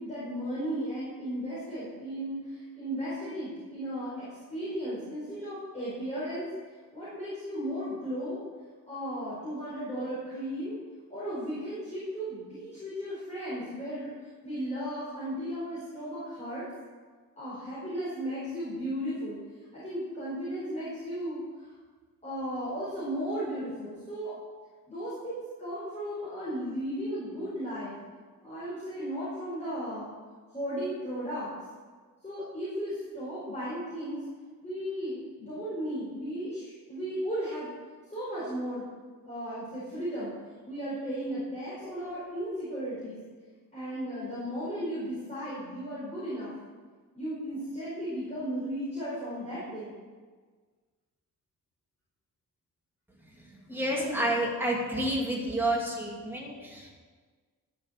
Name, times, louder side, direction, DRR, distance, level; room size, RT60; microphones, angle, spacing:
voice 1, 0.0-6.5 6.9-8.4 8.9-10.8 11.1-14.1 14.4-16.7 17.4-19.4 19.7-21.7 22.2-24.4 24.9-28.0 28.4-30.1 30.5-31.5 32.2-34.2 34.6-37.7 38.1-38.8 39.2-40.3 40.7-43.2 43.7-46.5 47.1-49.9 53.9-54.3, equal, 20° left, -10 dB, 4.6 m, -35 dB
voice 2, 53.7-56.9, right 1 dB, 5° right, -3 dB, 2.6 m, -29 dB
12.5 x 7.2 x 8.2 m, 1.5 s
wide cardioid pair, 160°, 34 cm